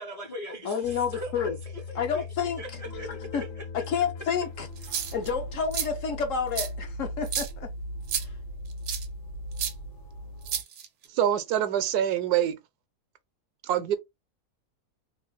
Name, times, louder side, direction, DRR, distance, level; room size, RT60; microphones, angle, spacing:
voice 1, 0.0-2.2 2.6-3.7, left 1 dB, 45° left, 0.5 m, -40 dB
voice 2, 0.6-1.6 2.0-2.6 3.3-3.4 3.7-4.7 5.1-7.7 8.2-8.3, left 6 dB, 60° left, 0.9 m, -29 dB
sound 1, 0.8-10.6, left 1 dB, 85° left, 1.7 m, -39 dB
Guitar, 2.8-8.3, left 3 dB, 20° right, 0.3 m, -50 dB
sound 2, 4.8-5.3 5.7-5.9 6.5-6.7 7.2-7.5 8.1-8.2 8.9-9.0 9.6-9.7 10.4-11.0, right 8 dB, 60° right, 0.8 m, -30 dB
voice 3, 11.1-12.6 13.6-14.0, right 10 dB, 80° right, 1.1 m, -25 dB
3.5 x 2.3 x 3.1 m
omnidirectional pair, 1.7 m